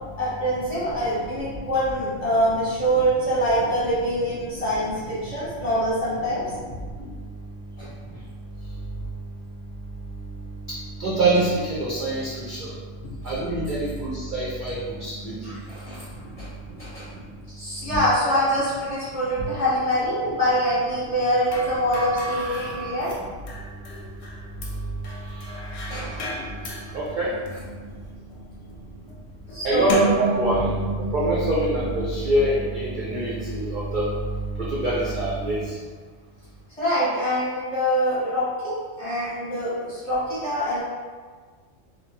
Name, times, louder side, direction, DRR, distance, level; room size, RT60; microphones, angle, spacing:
voice 1, 0.2-6.4 7.8-7.9 13.0-13.1 15.4-16.1 16.4-16.5 16.8-17.1 17.5-23.1 25.8-26.3 29.5-30.1 36.8-40.8, equal, 35° left, -10 dB, 0.8 m, -24 dB
voice 2, 11.0-12.7 13.2-15.6 17.9-18.0 26.9-27.3 29.6-30.7 31.1-34.1 34.6-35.6, right 2 dB, 60° right, -7 dB, 0.5 m, -25 dB
sound 1, 21.5-32.4, right 1 dB, 65° left, 0.8 m, -32 dB
2.8 x 2.1 x 2.8 m, 1.5 s
omnidirectional pair, 1.3 m